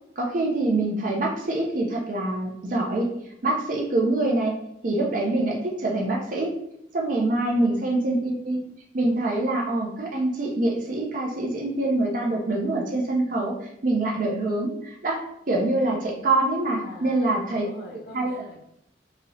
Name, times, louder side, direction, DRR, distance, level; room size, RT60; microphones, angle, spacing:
voice 1, 0.2-4.6 4.8-6.5 6.9-8.6 8.9-17.7 18.1-18.3, right 2 dB, 45° right, -1 dB, 0.5 m, -25 dB
voice 2, 7.4-7.8 16.8-18.6, left 1 dB, 60° left, -2 dB, 0.7 m, -44 dB
3.0 x 2.8 x 2.6 m, 0.76 s
head